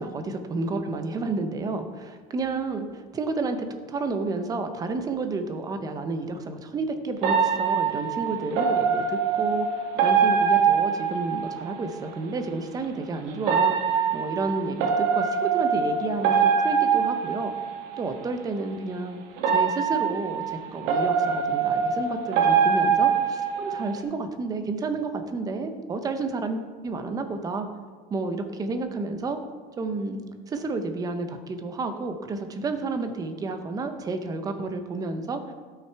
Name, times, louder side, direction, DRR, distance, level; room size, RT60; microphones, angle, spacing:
voice 1, 0.0-17.5 18.0-19.2 19.5-27.7 28.1-29.4 29.8-35.4, right 3 dB, 20° right, 8 dB, 0.6 m, -31 dB
sound 1, 7.2-11.8 13.4-18.0 19.4-24.0, right 6 dB, 75° right, 1.5 m, -23 dB
12.5 x 5.7 x 4.5 m, 1.5 s
cardioid pair, 170°, 19 cm